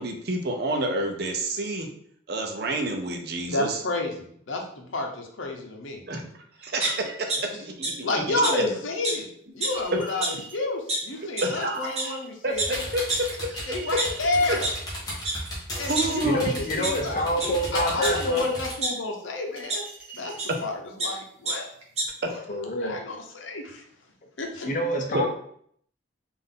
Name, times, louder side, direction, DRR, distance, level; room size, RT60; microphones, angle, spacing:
voice 1, 0.0-1.9 2.3-3.8 6.1-6.2 6.6-8.7 11.4-12.1 12.4-13.0 14.5-14.6 15.9-16.4 22.3-22.4 25.1-25.3, right 2 dB, 55° right, 3 dB, 0.6 m, -29 dB
voice 2, 3.5-6.0 8.0-9.3 9.5-12.8 13.7-14.7 15.8-19.8 20.1-21.7 22.3-23.8 24.4-24.7, left 2 dB, 80° left, 2 dB, 0.7 m, -30 dB
sound 1, 6.8-7.4 7.8-7.9 8.4-8.5 9.0-9.1 9.5-9.8 10.2-10.3 10.9-11.0 11.4-11.5 12.0-12.1 12.6-12.7 13.1-13.2 13.8-14.7 15.2-15.3 15.7-16.4 16.8-16.9 17.4-17.5 18.0-18.9 19.7-19.8 20.4-20.5 20.8-21.1 21.4-21.5 21.8-22.0, right 2 dB, 35° right, 0.8 m, -28 dB
Chink clink, 9.6-10.6 11.4-12.3 13.5-14.8 15.7-16.9 17.6-18.6 19.6-20.6, right 5 dB, 5° right, 1.4 m, -44 dB
sound 2, 12.5-18.7, equal, 20° left, 1.0 m, -35 dB
voice 3, 16.2-18.5 22.5-23.0 24.7-25.3, equal, 40° left, 2 dB, 0.6 m, -27 dB
3.7 x 2.5 x 3.7 m, 0.65 s
head